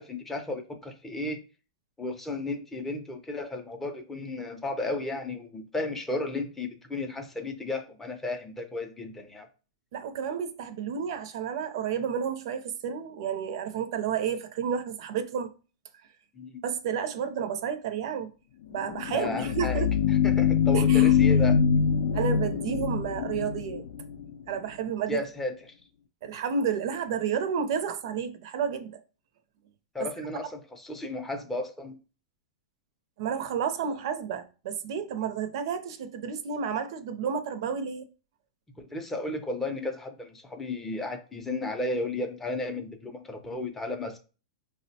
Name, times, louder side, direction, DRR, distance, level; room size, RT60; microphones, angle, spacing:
voice 1, 0.0-1.4 2.0-9.5 16.4-16.5 19.1-21.6 25.1-25.7 29.9-32.0 38.8-44.2, left 2 dB, 10° left, 0.4 m, -34 dB
voice 2, 9.9-15.5 16.6-18.3 18.7-19.9 20.7-21.1 22.1-23.8 24.5-25.2 26.2-29.0 33.2-38.1, right 7 dB, 60° right, 0.5 m, -31 dB
sound 1, 18.8-24.3, left 7 dB, 75° left, 0.4 m, -23 dB
4.8 x 2.0 x 2.7 m
supercardioid pair, 155°, 3 cm